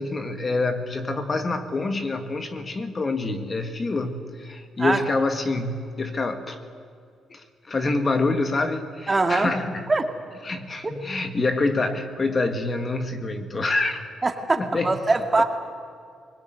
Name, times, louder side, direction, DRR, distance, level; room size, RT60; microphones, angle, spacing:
voice 1, 0.0-6.6 7.3-9.9 10.4-14.1 14.6-15.0 15.4-15.5, left 3 dB, 35° left, 7 dB, 1.8 m, -26 dB
voice 2, 9.1-9.5 9.9-10.1 10.8-10.9 14.2-15.4, right 3 dB, 25° right, 5 dB, 2.2 m, -22 dB
23.0 x 20.0 x 9.4 m, 2.3 s
cardioid pair, 90°, 0 cm